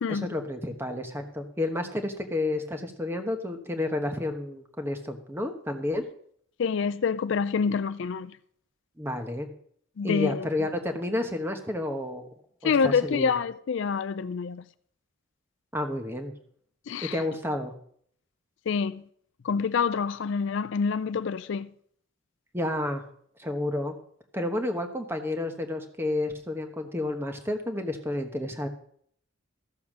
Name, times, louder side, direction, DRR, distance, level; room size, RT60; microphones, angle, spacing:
voice 1, 0.1-6.0 9.0-9.5 10.0-12.3 12.6-13.3 15.7-16.3 17.0-17.7 22.5-23.0 23.4-23.9 24.3-28.7, left 1 dB, 10° right, 1.1 m, -30 dB
voice 2, 6.6-8.3 10.0-10.5 12.6-14.6 16.9-17.2 18.7-19.0 19.4-21.7, left 5 dB, 55° left, 0.4 m, -27 dB
13.5 x 7.2 x 6.1 m
head